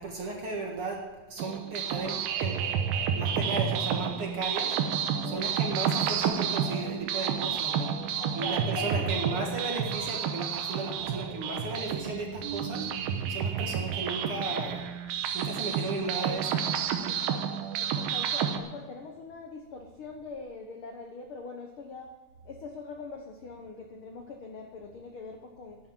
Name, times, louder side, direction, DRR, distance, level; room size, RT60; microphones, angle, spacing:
voice 1, 0.0-2.6 3.1-4.8 5.2-14.9 15.3-16.7, right 3 dB, 45° right, 0 dB, 2.1 m, -35 dB
sound 1, 1.4-18.6, right 8 dB, 85° right, 2.7 m, -30 dB
voice 2, 5.1-5.5 8.2-9.5 17.1-22.1 22.4-25.8, left 3 dB, 85° left, 3 dB, 1.1 m, -42 dB
11.0 x 10.0 x 7.4 m, 1.2 s
omnidirectional pair, 4.1 m